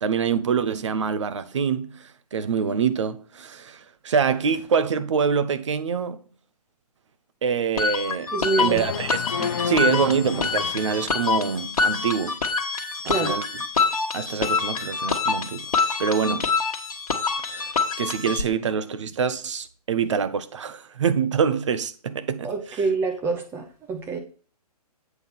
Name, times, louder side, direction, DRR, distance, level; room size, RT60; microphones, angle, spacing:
voice 1, 0.0-6.2 7.4-9.2 9.6-12.4 13.0-13.4 14.1-15.7 16.0-16.6 17.5-22.9, right 6 dB, 50° right, 0.7 m, -25 dB
sound 1, 7.8-18.4, left 4 dB, 60° left, 1.5 m, -26 dB
voice 2, 8.3-8.8 9.4-9.6 13.0-13.3 22.4-24.2, right 4 dB, 10° right, 1.0 m, -26 dB
sound 2, 8.7-11.7, left 7 dB, 40° left, 0.5 m, -32 dB
8.0 x 3.8 x 5.9 m
figure-of-eight pair, 135°, 20 cm